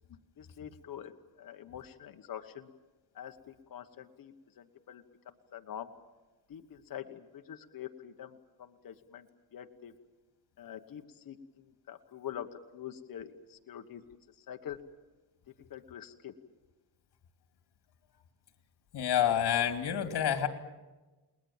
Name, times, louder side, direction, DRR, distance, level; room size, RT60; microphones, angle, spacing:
voice 1, 0.4-2.7 3.1-5.9 6.5-9.9 10.6-14.0 14.3-14.8 15.7-16.3, left 10 dB, 60° left, 6 dB, 1.2 m, -45 dB
voice 2, 18.9-20.5, left 10 dB, 80° left, 6 dB, 2.6 m, -28 dB
30.0 x 20.5 x 7.3 m, 1.2 s
cardioid pair, 120°, 39 cm